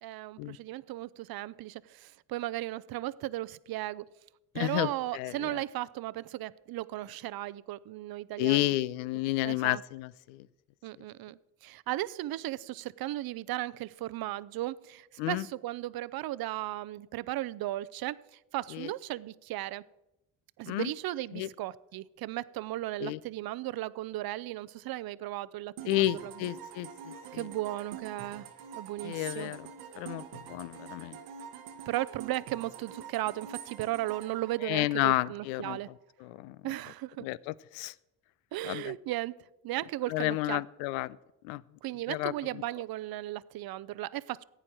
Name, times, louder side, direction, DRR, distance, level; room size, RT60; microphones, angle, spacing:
voice 1, 0.0-4.1 4.5-8.7 9.4-9.8 10.8-18.2 18.5-19.8 20.6-26.5 27.3-28.5 28.8-29.5 31.9-35.9 36.6-37.3 38.5-39.3 39.6-40.6 41.8-44.4, right 15 dB, 55° right, 19 dB, 0.6 m, -36 dB
voice 2, 4.5-5.6 8.4-10.5 15.2-15.5 18.7-18.9 20.7-20.9 21.3-21.5 23.0-23.2 25.9-27.5 29.0-29.7 30.0-31.2 34.6-36.6 37.2-37.9 38.6-39.0 40.1-41.2 41.4-41.6 42.1-42.6, left 17 dB, 80° left, 20 dB, 0.5 m, -31 dB
sound 1, 25.8-35.5, right 8 dB, 90° right, 1.3 m, -46 dB
15.0 x 9.0 x 4.5 m, 0.95 s
supercardioid pair, 65°, 45 cm